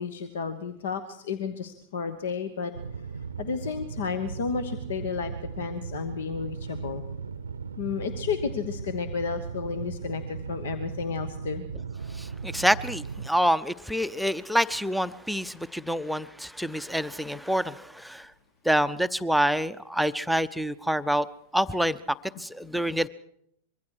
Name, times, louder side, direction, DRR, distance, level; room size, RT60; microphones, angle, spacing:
voice 1, 0.0-2.7 3.4-7.0 7.8-11.6, left 5 dB, 60° left, 11 dB, 1.2 m, -32 dB
sound 1, 2.7-13.3, right 5 dB, 75° right, 0.7 m, -37 dB
voice 2, 12.1-18.3 18.6-21.3 21.5-22.0 22.4-23.1, equal, ahead, 11 dB, 0.7 m, -27 dB
25.0 x 22.5 x 4.8 m, 0.73 s
figure-of-eight pair, 90°, 0 cm